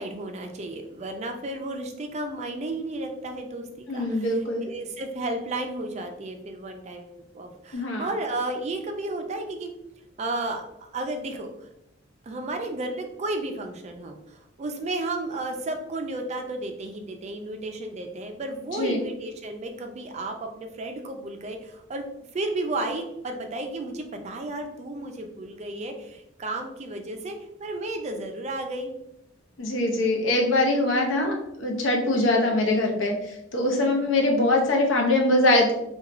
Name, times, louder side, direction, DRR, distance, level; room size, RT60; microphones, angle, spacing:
voice 1, 0.0-9.7 10.2-10.7 10.9-11.5 12.2-22.1 22.3-28.9 33.8-34.1, right 2 dB, 35° right, 4 dB, 0.3 m, -33 dB
voice 2, 3.9-4.6 7.7-8.1 18.7-19.0 29.6-35.7, left 2 dB, 75° left, 0 dB, 0.6 m, -23 dB
2.9 x 2.3 x 2.4 m, 0.81 s
head